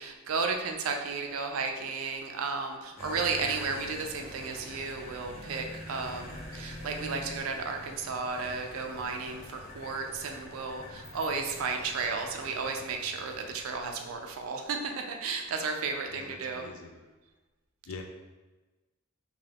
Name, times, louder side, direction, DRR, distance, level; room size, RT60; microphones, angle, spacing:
voice 1, 0.0-16.7, right 4 dB, 85° right, 4 dB, 0.4 m, -33 dB
sound 1, 3.0-14.3, left 1 dB, 30° left, 0.6 m, -45 dB
voice 2, 16.1-17.0 17.9-18.0, left 4 dB, 80° left, 4 dB, 0.4 m, -44 dB
2.6 x 2.4 x 3.3 m, 1.2 s
head